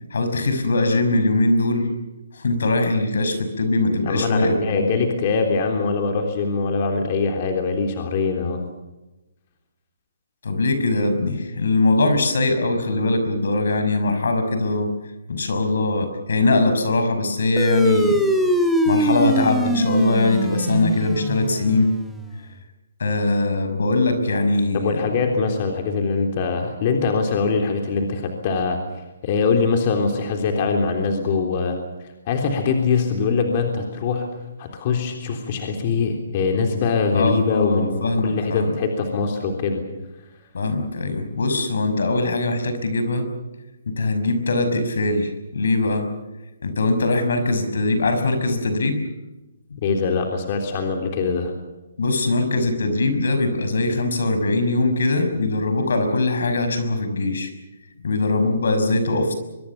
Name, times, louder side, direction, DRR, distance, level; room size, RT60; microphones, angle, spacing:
voice 1, 0.1-1.9 2.3-5.0 10.4-14.9 15.3-18.2 18.9-21.9 23.0-25.1 37.1-38.8 40.5-43.3 43.9-46.1 46.6-49.0 52.0-57.5 58.0-59.3, left 2 dB, 75° left, 8 dB, 5.8 m, -21 dB
voice 2, 4.0-8.6 24.7-28.8 29.2-31.8 32.2-34.3 34.6-39.8 49.8-51.5, left 4 dB, 35° left, 4 dB, 3.4 m, -22 dB
sound 1, 17.6-22.4, equal, ahead, 2.1 m, -22 dB
23.5 x 22.5 x 7.2 m, 1.0 s
hypercardioid pair, 160°, 0 cm